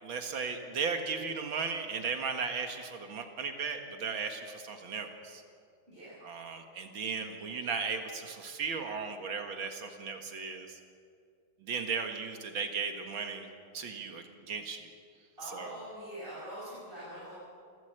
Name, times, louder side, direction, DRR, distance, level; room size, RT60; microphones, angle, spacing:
voice 1, 0.0-5.4 6.2-10.8 11.6-13.5 13.7-14.9 15.4-15.8, right 5 dB, 75° right, 5 dB, 2.5 m, -36 dB
voice 2, 15.4-17.3, right 1 dB, 25° right, -9 dB, 7.2 m, -43 dB
28.5 x 12.5 x 8.1 m, 2.2 s
omnidirectional pair, 2.2 m